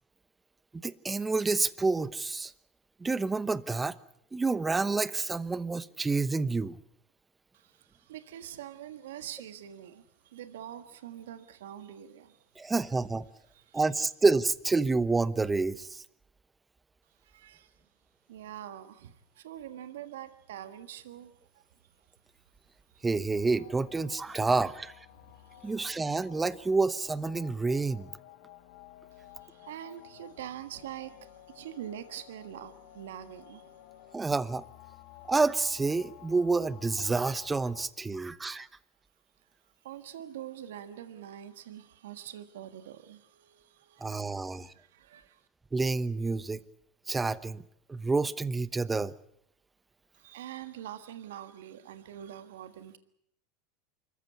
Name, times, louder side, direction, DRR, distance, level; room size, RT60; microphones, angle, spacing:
voice 1, 0.7-2.5 3.0-4.0 4.3-6.8 12.6-13.3 13.7-16.0 23.0-24.9 25.6-28.1 34.1-34.6 35.3-38.7 44.0-44.7 45.7-46.6 47.1-47.6 47.9-49.1, right 3 dB, 15° right, 1.0 m, -28 dB
voice 2, 7.5-12.4 13.5-13.8 17.2-17.8 18.3-21.6 22.9-23.1 24.3-24.4 25.1-25.7 29.1-33.8 39.8-45.5 50.1-53.0, right 11 dB, 80° right, 1.6 m, -45 dB
sound 1, 23.3-37.9, left 15 dB, 65° left, 1.6 m, -53 dB
25.5 x 15.0 x 9.8 m
hypercardioid pair, 100°, 0 cm